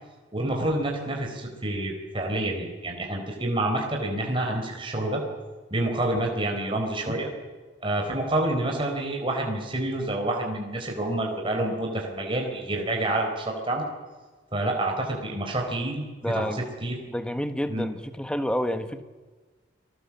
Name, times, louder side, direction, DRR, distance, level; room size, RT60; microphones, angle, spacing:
voice 1, 0.3-5.2 5.7-7.3 7.8-13.8 14.5-16.0 16.3-17.0 17.7-17.9, right 1 dB, 30° right, 1 dB, 4.3 m, -28 dB
voice 2, 16.2-16.6 17.1-19.0, equal, 5° left, 9 dB, 1.4 m, -29 dB
30.0 x 20.5 x 7.3 m, 1.4 s
head